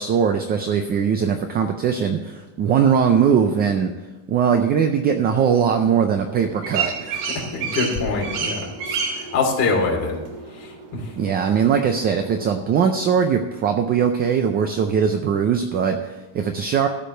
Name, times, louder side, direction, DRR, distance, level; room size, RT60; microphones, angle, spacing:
voice 1, 0.0-3.9 4.3-7.2 11.2-16.9, right 7 dB, 20° right, 6 dB, 0.4 m, -20 dB
sound 1, 6.2-12.4, right 5 dB, 85° right, 3.1 m, -31 dB
voice 2, 7.5-10.2 10.5-11.1, left 4 dB, 35° left, -1 dB, 2.9 m, -24 dB
13.0 x 5.2 x 7.7 m, 1.1 s
cardioid pair, 160°, 46 cm